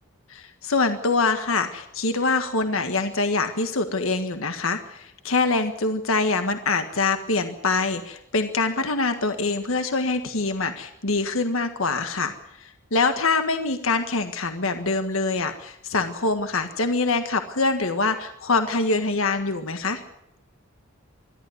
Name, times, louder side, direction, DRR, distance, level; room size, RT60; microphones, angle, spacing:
voice 1, 0.3-20.0, left 3 dB, 75° left, 7 dB, 1.6 m, -24 dB
22.0 x 14.0 x 9.3 m, 0.80 s
head